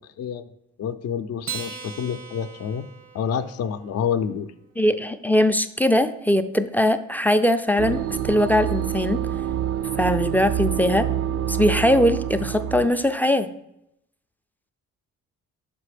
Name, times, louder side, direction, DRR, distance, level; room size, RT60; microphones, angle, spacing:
voice 1, 0.8-2.9 3.1-4.5, left 7 dB, 55° left, 12 dB, 0.5 m, -28 dB
Acoustic guitar, 1.4-4.1, right 7 dB, 85° right, 1.1 m, -38 dB
voice 2, 4.8-9.2 10.0-11.1 11.5-13.5, left 1 dB, 5° left, 10 dB, 0.4 m, -21 dB
sound 1, 7.8-12.9, right 10 dB, 55° right, 0.5 m, -27 dB
5.9 x 5.3 x 4.9 m, 0.80 s
cardioid pair, 90°, 30 cm